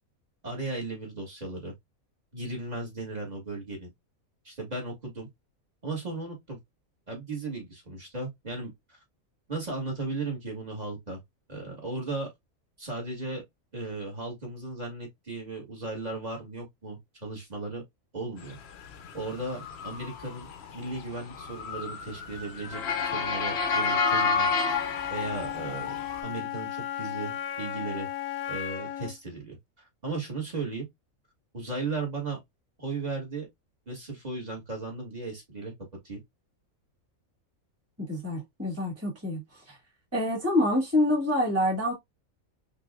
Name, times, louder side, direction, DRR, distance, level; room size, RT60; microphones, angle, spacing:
voice 1, 0.4-1.7 2.3-3.9 4.5-5.3 5.8-6.6 7.1-9.0 9.5-11.2 11.5-12.3 12.8-13.4 13.7-17.8 18.1-18.6 19.1-24.5 25.1-26.0 26.2-28.1 28.5-29.6 30.0-30.9 31.5-32.4 32.8-33.5 33.9-35.7 36.0-36.2, right 3 dB, 30° right, 1.7 m, -36 dB
Motor vehicle (road) / Siren, 18.9-26.2, left 4 dB, 55° left, 0.8 m, -30 dB
Wind instrument woodwind instrument, 24.7-29.2, left 11 dB, 80° left, 1.0 m, -35 dB
voice 2, 38.0-39.4 39.7-39.8 40.1-41.9, left 1 dB, 10° right, 1.8 m, -26 dB
5.3 x 2.6 x 2.3 m
omnidirectional pair, 1.5 m